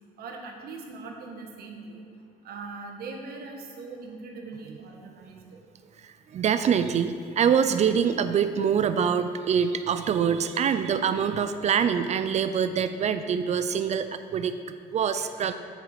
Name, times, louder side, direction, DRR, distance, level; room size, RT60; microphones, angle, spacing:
voice 1, 0.2-2.0 2.4-5.6 15.2-15.3, right 3 dB, 65° right, 1 dB, 1.4 m, -41 dB
voice 2, 6.0-14.5 14.9-15.5, right 7 dB, 40° right, 10 dB, 0.4 m, -25 dB
8.2 x 4.9 x 5.8 m, 2.3 s
cardioid pair, 110°, 17 cm